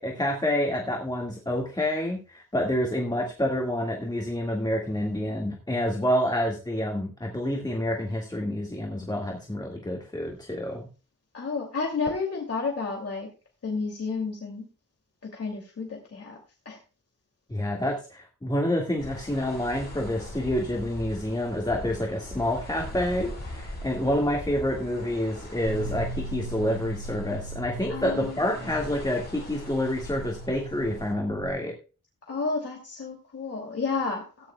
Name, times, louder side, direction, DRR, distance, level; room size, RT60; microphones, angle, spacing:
voice 1, 0.0-10.9 17.5-31.7, left 1 dB, 15° left, 0 dB, 1.9 m, -28 dB
voice 2, 11.3-13.3 13.6-14.7 15.2-16.4 16.7-16.8 27.9-28.5 32.3-34.5, left 4 dB, 50° left, 0 dB, 2.6 m, -31 dB
sound 1, 19.0-31.1, left 1 dB, 30° left, 6.1 m, -41 dB
sound 2, 25.6-31.5, right 2 dB, 30° right, 4.7 m, -39 dB
17.5 x 10.0 x 2.3 m, 0.34 s
wide cardioid pair, 140°, 31 cm